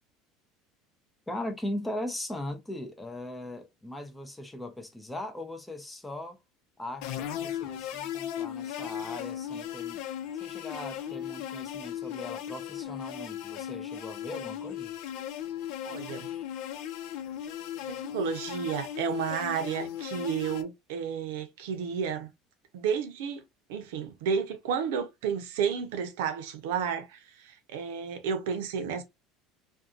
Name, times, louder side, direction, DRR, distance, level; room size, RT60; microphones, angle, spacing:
voice 1, 1.3-6.4 6.8-10.0 10.3-14.9, left 1 dB, 10° left, 0.5 m, -39 dB
sound 1, 7.0-20.6, left 10 dB, 70° left, 0.4 m, -37 dB
voice 2, 15.8-16.3 17.9-22.3 22.7-23.4 23.7-29.0, right 7 dB, 85° right, 0.7 m, -32 dB
2.7 x 2.3 x 2.4 m
supercardioid pair, 115°, 0 cm